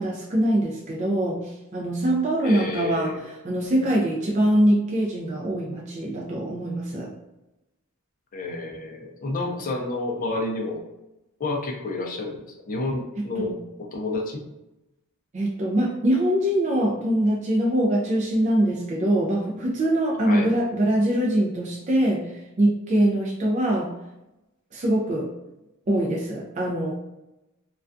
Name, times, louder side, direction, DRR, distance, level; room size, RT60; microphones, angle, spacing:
voice 1, 0.0-7.1 13.2-13.6 15.3-23.9 24.7-25.3 25.9-26.9, right 1 dB, 35° right, -3 dB, 0.4 m, -23 dB
voice 2, 2.4-3.3 8.3-10.8 11.4-12.4 12.7-14.4 20.3-20.5, left 2 dB, 40° left, 1 dB, 0.4 m, -29 dB
2.3 x 2.3 x 2.5 m, 0.95 s
head